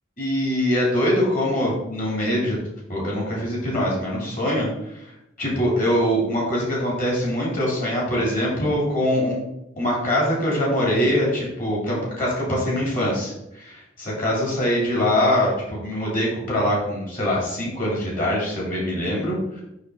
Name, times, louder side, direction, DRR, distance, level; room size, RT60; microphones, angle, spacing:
voice 1, 0.2-2.6 2.9-4.7 5.4-9.4 9.8-19.6, equal, 45° left, -4 dB, 2.9 m, -23 dB
6.5 x 5.8 x 3.9 m, 0.86 s
head